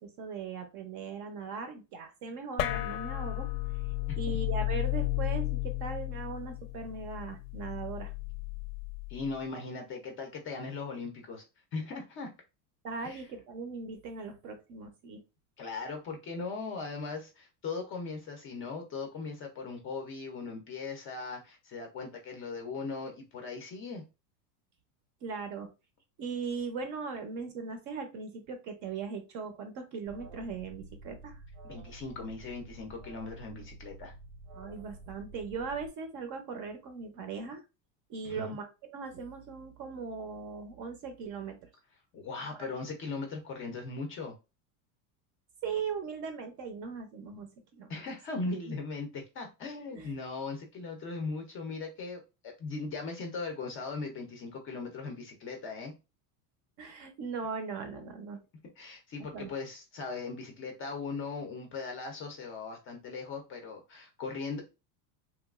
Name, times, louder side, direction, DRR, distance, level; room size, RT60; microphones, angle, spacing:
voice 1, 0.0-3.5 4.2-8.1 12.8-15.2 25.2-25.7 26.2-31.4 34.5-37.6 38.1-41.6 42.6-42.7 45.6-48.0 48.7-48.8 49.9-50.1 56.8-58.4 59.3-59.5, right 5 dB, 40° right, 7 dB, 0.6 m, -39 dB
sound 1, 2.6-9.3, left 17 dB, 85° left, 0.6 m, -34 dB
voice 2, 9.1-11.4 11.7-12.3 13.0-13.2 15.6-24.0 31.6-34.1 38.2-38.6 42.1-44.4 47.9-55.9 58.8-64.6, left 4 dB, 30° left, 3 dB, 0.5 m, -39 dB
Alarm, 30.0-35.9, right 2 dB, 80° right, 1.0 m, -49 dB
3.0 x 2.3 x 2.3 m, 0.28 s
supercardioid pair, 135°, 47 cm